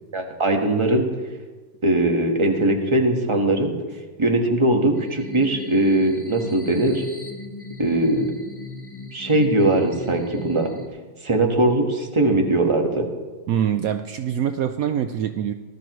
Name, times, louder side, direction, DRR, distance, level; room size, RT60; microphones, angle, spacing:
voice 1, 0.1-1.1 1.8-3.7 4.2-7.0 7.8-8.3 9.1-10.7 11.2-13.1, right 2 dB, 15° right, 2 dB, 1.2 m, -20 dB
sound 1, 4.9-10.9, left 2 dB, 15° left, 1.0 m, -38 dB
voice 2, 13.5-15.5, right 9 dB, 80° right, 8 dB, 0.7 m, -24 dB
19.0 x 13.0 x 3.1 m, 1.3 s
omnidirectional pair, 2.1 m